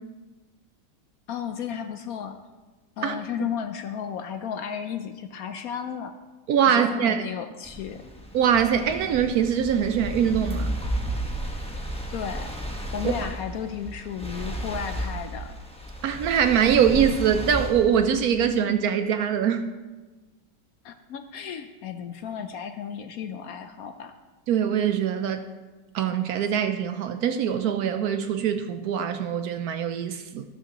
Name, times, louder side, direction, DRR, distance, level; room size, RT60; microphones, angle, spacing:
voice 1, 1.3-2.4 3.0-6.2 6.7-8.0 12.1-12.5 12.9-15.6 20.8-24.1, left 8 dB, 70° left, 8 dB, 0.9 m, -34 dB
voice 2, 6.5-7.2 8.3-10.8 13.0-13.1 16.0-19.6 24.5-25.4 25.9-30.4, right 8 dB, 70° right, 8 dB, 1.0 m, -23 dB
sound 1, 7.6-18.5, equal, 5° left, 0.9 m, -33 dB
13.5 x 12.0 x 3.0 m, 1.2 s
omnidirectional pair, 1.9 m